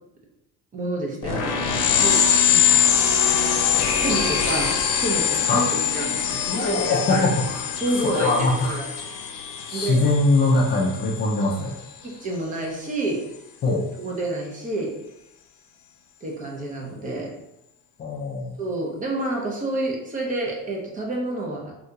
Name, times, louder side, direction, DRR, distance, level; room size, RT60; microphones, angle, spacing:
voice 1, 0.7-2.2 2.5-2.9 3.3-3.4 4.0-5.6 5.9-7.3 7.8-8.8 9.7-10.0 12.0-13.2 14.0-14.9 16.2-17.3 18.6-21.8, right 2 dB, 25° right, -1 dB, 0.6 m, -29 dB
sound 1, 1.2-11.4, left 8 dB, 70° left, 0.6 m, -23 dB
voice 2, 6.5-7.7 8.0-8.8 9.7-11.8 13.6-13.9 18.0-18.5, left 2 dB, 30° left, -2 dB, 0.4 m, -22 dB
3.7 x 2.7 x 2.3 m, 0.89 s
cardioid pair, 150°, 32 cm